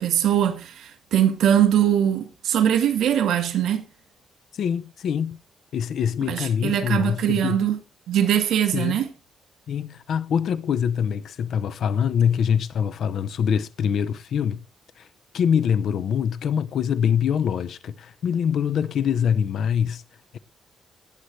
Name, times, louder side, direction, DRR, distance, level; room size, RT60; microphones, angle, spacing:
voice 1, 0.0-3.9 6.3-7.8 8.1-9.1, right 10 dB, 85° right, 2.5 m, -21 dB
voice 2, 4.6-5.4 5.7-7.6 8.7-9.0 9.7-14.6 15.0-15.1 15.3-20.0, left 8 dB, 65° left, 0.7 m, -24 dB
19.0 x 8.0 x 3.2 m
cardioid pair, 140°, 0 cm